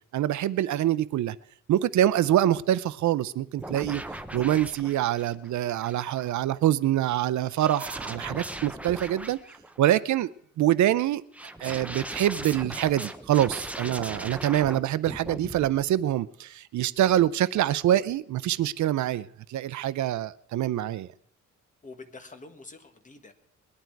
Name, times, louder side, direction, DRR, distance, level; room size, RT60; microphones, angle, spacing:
voice 1, 0.1-1.4 1.7-4.0 4.3-9.4 9.8-10.3 10.6-11.2 11.6-21.1, right 12 dB, 70° right, 18 dB, 0.5 m, -25 dB
sound 1, 3.6-6.4 7.6-9.9 11.3-14.8 15.1-15.7, right 1 dB, 5° right, 0.7 m, -38 dB
voice 2, 21.8-23.3, left 3 dB, 25° left, 7 dB, 1.6 m, -47 dB
20.5 x 11.5 x 4.6 m, 0.64 s
wide cardioid pair, 160°, 30 cm